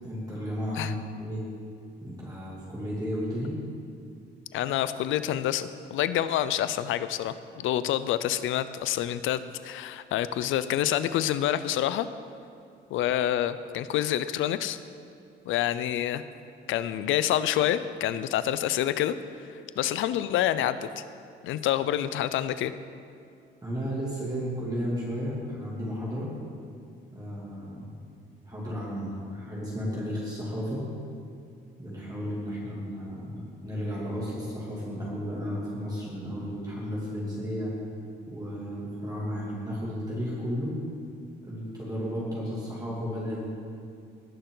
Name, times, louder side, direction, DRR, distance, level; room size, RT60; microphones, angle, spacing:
voice 1, 0.0-1.4 2.0-3.5 23.6-26.3 27.1-28.0 28.4-30.9 31.8-37.7 38.3-40.7 41.4-43.4, equal, 20° right, -7 dB, 2.7 m, -33 dB
voice 2, 4.5-12.1 12.9-14.8 15.5-16.2 16.7-19.2 19.8-21.0 21.4-22.7, left 12 dB, 85° left, 13 dB, 0.5 m, -27 dB
18.5 x 6.6 x 4.0 m, 2.4 s
cardioid pair, 90°, 20 cm